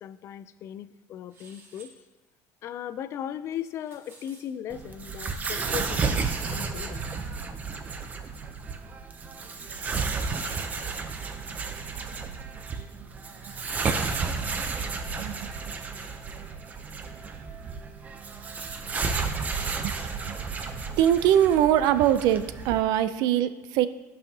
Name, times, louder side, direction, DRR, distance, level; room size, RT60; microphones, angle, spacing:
voice 1, 0.0-1.9 2.6-7.0, left 10 dB, 45° left, 14 dB, 0.4 m, -37 dB
sound 1, 1.3-1.9 3.5-4.4, right 3 dB, 40° right, 1.7 m, -53 dB
sound 2, 4.7-22.8, right 4 dB, 25° right, 0.6 m, -32 dB
voice 2, 15.2-15.5 19.8-19.9 21.0-23.9, right 11 dB, 75° right, 12 dB, 0.5 m, -22 dB
15.5 x 5.6 x 2.8 m, 1.1 s
cardioid pair, 160°, 7 cm